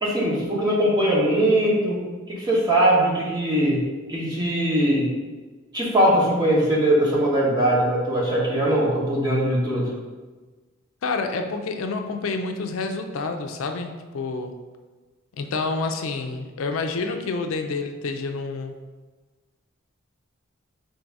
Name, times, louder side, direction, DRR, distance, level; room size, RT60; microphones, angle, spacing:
voice 1, 0.0-2.0 2.3-3.8 4.1-5.1 5.7-9.9, right 1 dB, 20° right, -6 dB, 1.1 m, -21 dB
voice 2, 11.0-14.5 15.4-18.7, left 3 dB, 80° left, 5 dB, 0.4 m, -28 dB
3.8 x 2.6 x 4.6 m, 1.3 s
head